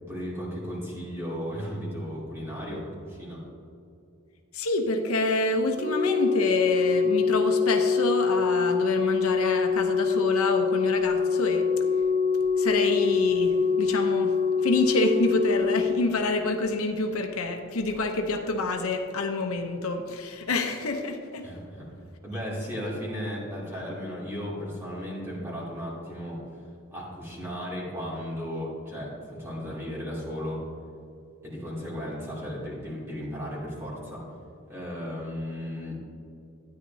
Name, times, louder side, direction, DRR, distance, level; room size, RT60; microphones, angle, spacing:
voice 1, 0.1-3.4 21.4-21.9 22.2-26.6 26.9-30.6 31.4-34.2 34.7-35.9, equal, 10° right, -6 dB, 2.6 m, -35 dB
voice 2, 4.5-11.7 12.6-21.5, left 2 dB, 75° left, 4 dB, 0.8 m, -27 dB
Organ, 5.8-16.6 17.8-18.0, left 5 dB, 70° right, 2.0 m, -25 dB
13.0 x 9.8 x 2.8 m, 2.6 s
head